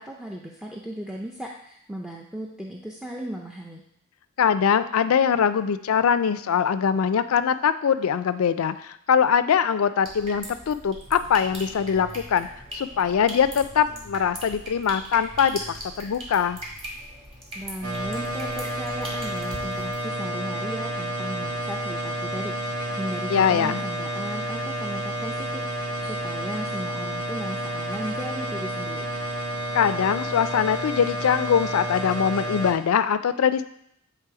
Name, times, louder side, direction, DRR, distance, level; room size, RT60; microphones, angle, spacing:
voice 1, 0.0-3.8 17.5-29.1, equal, 5° right, -1 dB, 0.4 m, -36 dB
voice 2, 4.4-12.5 12.7-15.6 16.0-16.6 23.3-23.8 29.7-33.6, left 7 dB, 75° left, 12 dB, 0.4 m, -22 dB
sound 1, 10.0-20.0, right 1 dB, 25° right, 1.6 m, -40 dB
sound 2, 17.8-32.7, right 1 dB, 80° right, 1.0 m, -30 dB
8.2 x 3.4 x 4.7 m, 0.72 s
head